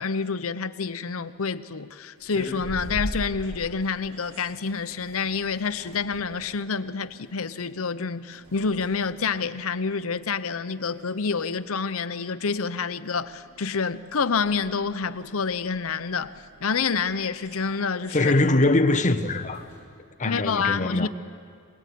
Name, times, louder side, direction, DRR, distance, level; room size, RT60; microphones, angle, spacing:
voice 1, 0.0-18.3 20.2-21.1, left 5 dB, 65° left, 0.8 m, -28 dB
sound 1, 2.2-19.8, equal, 90° right, 6.7 m, -43 dB
voice 2, 18.1-19.7 20.2-21.1, left 2 dB, 35° left, 1.0 m, -22 dB
26.0 x 19.0 x 8.5 m
head